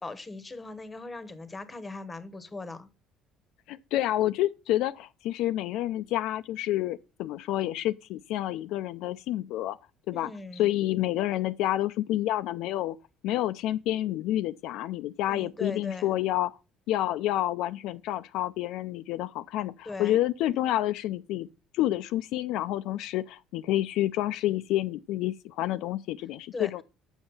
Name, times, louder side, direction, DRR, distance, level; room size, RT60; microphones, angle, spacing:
voice 1, 0.0-2.9 10.1-10.7 15.3-16.1 19.9-20.2 26.5-26.7, left 3 dB, 15° left, 0.9 m, -39 dB
voice 2, 3.7-9.8 10.1-13.0 13.2-16.5 16.9-21.5 21.7-26.8, left 14 dB, 75° left, 0.4 m, -29 dB
7.0 x 6.2 x 5.4 m
cardioid pair, 115°, 0 cm